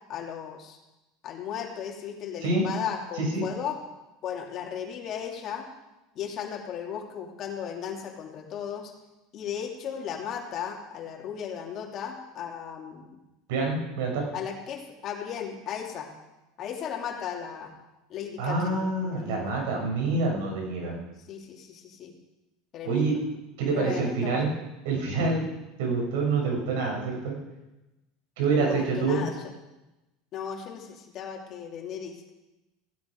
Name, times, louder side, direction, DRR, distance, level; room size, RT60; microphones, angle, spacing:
voice 1, 0.1-0.8 1.2-3.8 4.2-5.7 6.1-8.9 9.3-13.2 14.3-16.1 16.6-17.7 18.1-19.5 21.3-22.1 22.7-23.2 23.7-24.5 28.6-29.3 30.3-32.3, left 8 dB, 45° left, 1 dB, 3.2 m, -36 dB
voice 2, 13.5-14.3 18.4-20.9 22.8-23.1 23.6-24.5 24.8-25.5 25.8-27.3 28.4-29.2, right 3 dB, 80° right, -1 dB, 6.4 m, -26 dB
16.0 x 16.0 x 4.9 m, 1.0 s
supercardioid pair, 115°, 0 cm